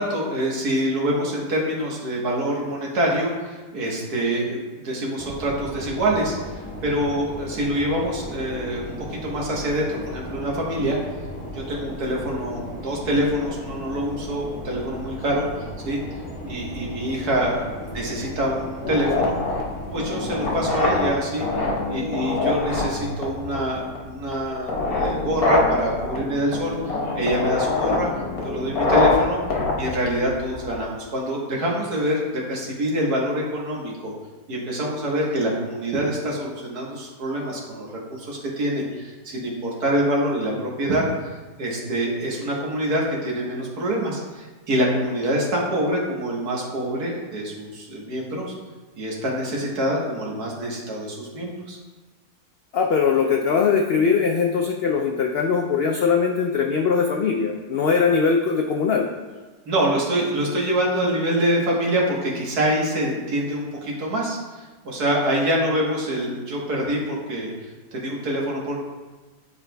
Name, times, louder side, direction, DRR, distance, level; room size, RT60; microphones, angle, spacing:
voice 1, 0.0-11.0 11.5-16.0 16.4-19.4 19.9-21.5 21.9-28.1 28.4-29.4 29.8-34.1 34.5-41.0 41.6-48.5 49.0-51.8 59.7-68.8, right 1 dB, 90° right, -3 dB, 1.8 m, -25 dB
sound 1, 5.2-21.1, left 1 dB, 15° left, 1.0 m, -36 dB
sound 2, 18.8-30.8, left 3 dB, 70° left, 1.5 m, -25 dB
voice 2, 52.7-59.1, left 5 dB, 85° left, 1 dB, 0.5 m, -21 dB
9.5 x 4.8 x 2.2 m, 1.3 s
omnidirectional pair, 1.6 m